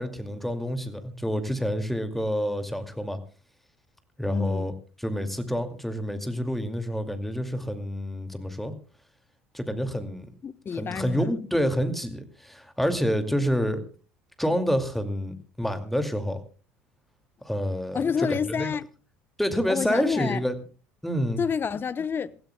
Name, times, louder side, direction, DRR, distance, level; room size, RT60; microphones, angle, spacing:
voice 1, 0.0-3.2 4.2-4.7 5.0-8.7 9.5-10.3 10.7-13.8 14.4-16.4 17.4-18.0 18.3-18.7 19.4-20.5 21.0-21.4, equal, 5° left, 2.3 m, -28 dB
voice 2, 4.2-4.7 10.4-11.3 17.9-18.9 19.7-20.4 21.4-22.3, left 6 dB, 35° left, 0.9 m, -28 dB
28.0 x 15.5 x 2.2 m
hypercardioid pair, 70°, 7 cm